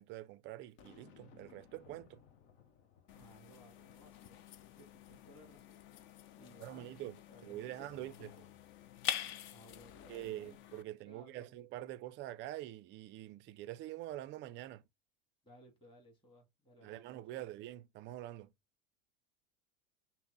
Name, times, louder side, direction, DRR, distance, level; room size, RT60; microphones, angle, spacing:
voice 1, 0.0-2.2 6.6-8.3 10.1-14.8 16.8-18.5, right 14 dB, 35° right, 0.4 m, -45 dB
Boom, 0.8-4.1, left 7 dB, 65° left, 0.9 m, -62 dB
sound 1, 3.1-10.8, left 11 dB, 35° left, 0.4 m, -46 dB
voice 2, 3.1-5.8 6.4-6.9 7.2-8.5 9.5-10.6 10.9-11.6 15.4-17.5, equal, 15° left, 2.1 m, -61 dB
5.7 x 2.1 x 3.8 m
hypercardioid pair, 95°, 36 cm